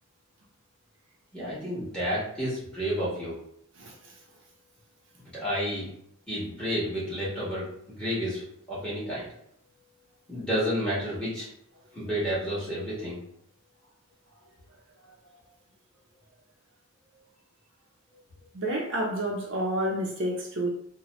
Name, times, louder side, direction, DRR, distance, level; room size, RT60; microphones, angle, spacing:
voice 1, 1.3-3.4 5.3-5.9 6.3-9.3 10.3-11.5 11.9-13.2, equal, 5° left, -10 dB, 1.3 m, -30 dB
voice 2, 3.8-4.1 15.3-15.4 18.5-20.7, right 1 dB, 55° right, -2 dB, 0.6 m, -30 dB
2.8 x 2.2 x 3.0 m, 0.70 s
head